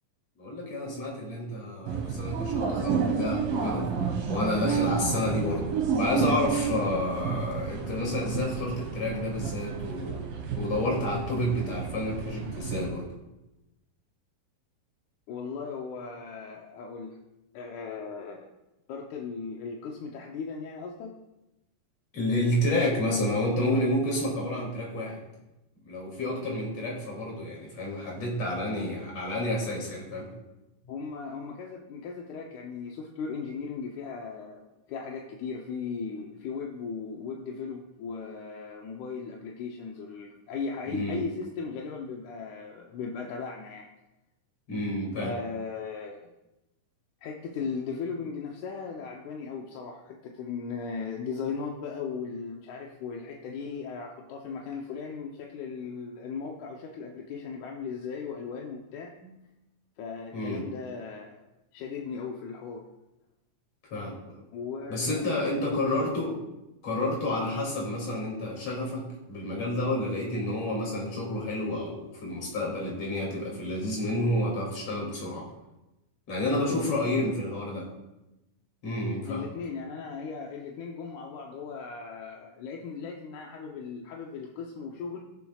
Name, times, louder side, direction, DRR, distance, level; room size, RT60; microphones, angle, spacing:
voice 1, 0.4-3.9 4.3-10.3 10.5-13.1 22.1-25.2 25.8-30.3 40.9-41.2 44.7-45.3 59.2-59.4 60.3-60.6 63.9-64.4 64.9-66.4 66.8-75.5 76.3-77.9 78.8-79.5, left 1 dB, 50° left, -2 dB, 3.5 m, -30 dB
sound 1, 1.9-12.9, right 6 dB, 90° right, 3.3 m, -31 dB
voice 2, 15.3-17.2 17.5-18.5 18.9-21.1 30.8-43.9 45.2-46.3 47.2-59.1 60.0-61.4 61.7-62.8 64.5-66.0 76.7-77.3 79.3-85.2, left 5 dB, 75° left, 0 dB, 2.0 m, -37 dB
20.0 x 7.0 x 2.4 m, 0.98 s
omnidirectional pair, 4.0 m